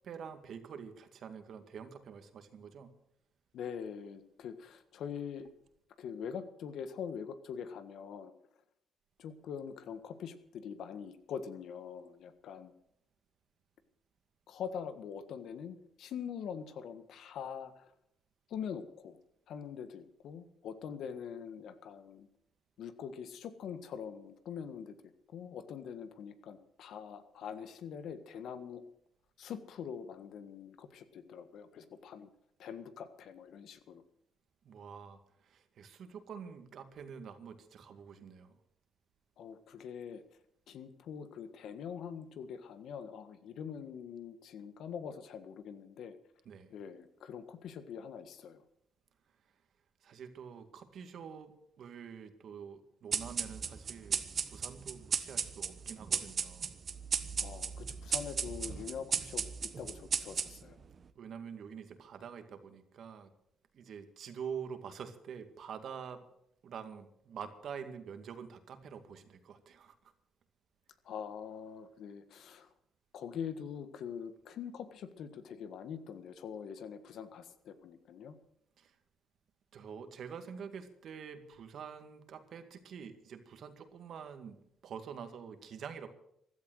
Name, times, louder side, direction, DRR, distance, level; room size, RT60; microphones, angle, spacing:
voice 1, 0.0-2.9 34.6-38.6 46.5-46.8 50.0-56.7 61.2-63.3 63.7-66.2 66.6-70.1 78.8-79.0 79.7-86.1, right 7 dB, 65° right, 8 dB, 2.1 m, -46 dB
voice 2, 3.5-5.5 6.0-8.3 9.2-12.7 14.5-17.9 18.5-19.2 19.5-22.3 22.8-25.0 25.3-28.8 29.4-32.3 32.6-34.0 39.4-40.2 40.7-46.2 46.7-48.6 57.4-60.8 71.0-72.7 73.1-78.4, left 7 dB, 75° left, 10 dB, 1.6 m, -44 dB
sound 1, 53.1-60.9, right 6 dB, 45° right, 1.2 m, -36 dB
15.5 x 12.5 x 6.4 m, 0.74 s
cardioid pair, 90°, 0 cm